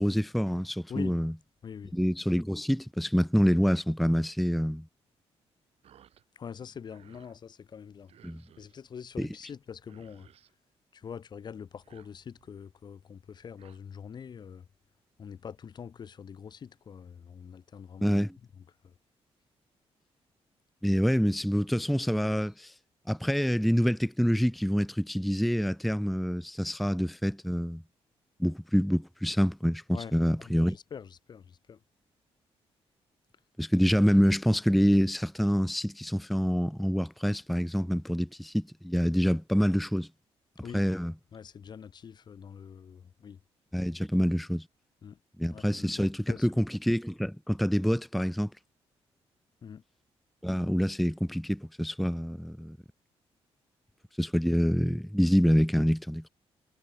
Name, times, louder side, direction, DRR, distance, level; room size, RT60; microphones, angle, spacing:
voice 1, 0.0-1.3 1.9-4.9 8.2-8.4 9.2-9.4 18.0-18.4 20.8-22.7 23.1-27.8 28.4-30.8 33.6-40.1 40.7-41.1 43.7-44.7 45.4-48.5 50.4-52.8 54.2-56.2, equal, ahead, 0.7 m, -26 dB
sound 1, 5.8-6.2 6.6-7.4 8.1-8.8 9.5-9.6 9.8-10.5 11.7-12.5 13.3-13.8, right 10 dB, 70° right, 7.5 m, -60 dB
voice 2, 6.4-8.1 8.6-10.3 10.9-14.6 15.2-18.2 29.9-30.1 30.4-31.4 31.7-31.8 40.6-40.8 41.3-43.4 45.0-45.2 45.5-46.5 49.6-49.8, left 7 dB, 40° left, 1.2 m, -44 dB
cardioid pair, 145°, 11 cm